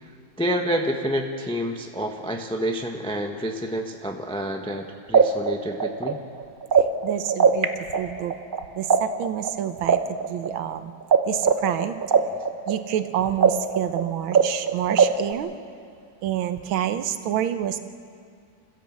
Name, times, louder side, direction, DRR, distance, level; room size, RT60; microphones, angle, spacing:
voice 1, 0.4-6.2, equal, 5° left, 2 dB, 0.8 m, -28 dB
sound 1, 4.7-4.8 5.1-7.6 7.9-11.2 11.4-15.3, right 6 dB, 40° right, 0.7 m, -19 dB
voice 2, 6.7-8.3 8.7-10.9 11.3-12.0 12.7-15.5 16.2-17.8, right 11 dB, 80° right, 10 dB, 1.7 m, -28 dB
27.0 x 16.0 x 7.4 m, 2.3 s
omnidirectional pair, 2.2 m